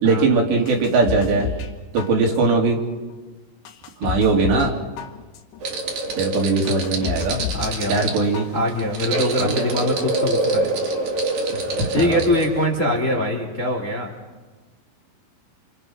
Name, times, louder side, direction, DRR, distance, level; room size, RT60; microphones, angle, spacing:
voice 1, 0.0-1.5 1.9-2.8 4.0-4.7 6.2-7.4 7.9-8.4 9.4-9.7 11.6-12.2 12.8-12.9, right 3 dB, 70° right, 1 dB, 5.1 m, -20 dB
sound 1, 0.7-1.7 2.0-2.6 3.1-3.2 3.7-4.7 5.0-5.6 6.1-6.2 6.7-7.7 8.0-8.6 8.9-9.0, left 7 dB, 75° left, 3.7 m, -30 dB
sound 2, 5.6-12.7, right 2 dB, 55° right, 4.0 m, -25 dB
voice 2, 7.5-8.2 8.5-10.7 11.9-14.1, left 1 dB, 20° left, 2 dB, 2.2 m, -23 dB
28.0 x 27.5 x 5.9 m, 1.3 s
omnidirectional pair, 5.4 m